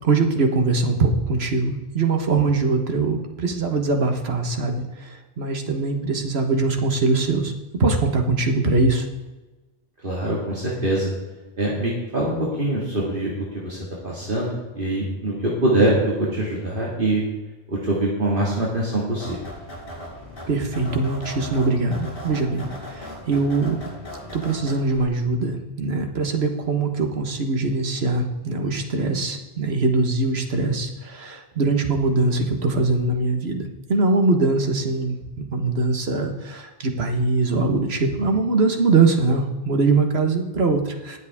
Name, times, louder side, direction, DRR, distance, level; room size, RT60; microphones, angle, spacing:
voice 1, 0.0-4.8 5.4-7.5 7.8-9.0 20.5-23.8 24.3-33.6 33.9-35.2 35.5-41.2, right 3 dB, 65° right, 5 dB, 1.6 m, -22 dB
voice 2, 10.0-11.1 11.6-17.2 17.7-19.4, right 1 dB, 50° right, -5 dB, 2.4 m, -24 dB
sound 1, 19.2-25.0, left 1 dB, 55° left, 5.2 m, -38 dB
21.0 x 7.7 x 3.6 m, 1.2 s
omnidirectional pair, 1.1 m